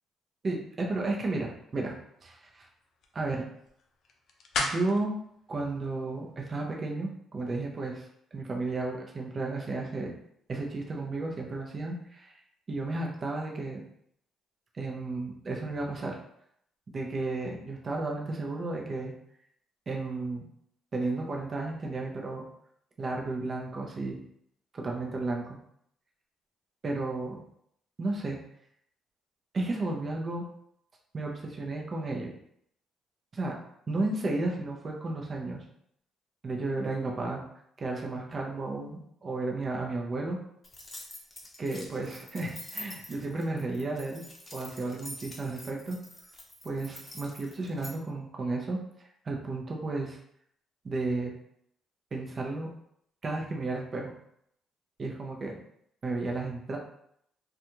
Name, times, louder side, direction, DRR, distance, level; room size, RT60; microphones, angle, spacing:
voice 1, 0.9-1.9 2.2-2.7 3.1-3.4 4.6-5.2 5.5-8.1 8.3-10.1 10.5-12.3 12.7-13.8 14.7-16.2 16.9-19.1 19.9-20.5 20.9-22.4 23.0-24.2 24.7-25.6 26.8-27.4 28.0-28.4 29.5-30.4 31.1-32.3 33.3-33.6 33.9-35.6 36.4-37.4 37.8-40.4 41.6-44.2 44.5-46.0 46.6-48.8 49.2-50.2 50.8-51.3 52.1-52.7 53.2-54.1 55.0-55.6 56.0-56.8, right 2 dB, 40° right, 0 dB, 0.6 m, -33 dB
sound 1, 1.6-6.7, left 3 dB, 65° left, 0.4 m, -40 dB
sound 2, 40.6-47.9, left 1 dB, 30° left, 0.7 m, -46 dB
2.4 x 2.3 x 2.9 m, 0.72 s
supercardioid pair, 70°, 0 cm